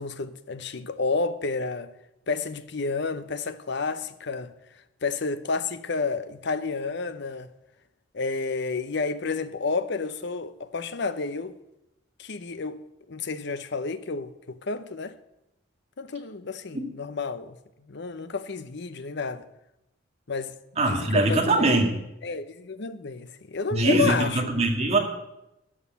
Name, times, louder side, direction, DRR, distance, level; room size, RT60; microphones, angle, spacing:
voice 1, 0.0-1.9 2.3-4.5 5.0-7.5 8.1-11.6 12.2-12.8 13.1-15.2 16.0-17.5 17.9-19.4 20.3-20.6 20.9-21.7 22.2-24.4, left 4 dB, 60° left, 0.8 m, -30 dB
voice 2, 20.8-21.9 23.7-25.0, right 2 dB, 35° right, 2.0 m, -22 dB
12.5 x 6.5 x 9.1 m
head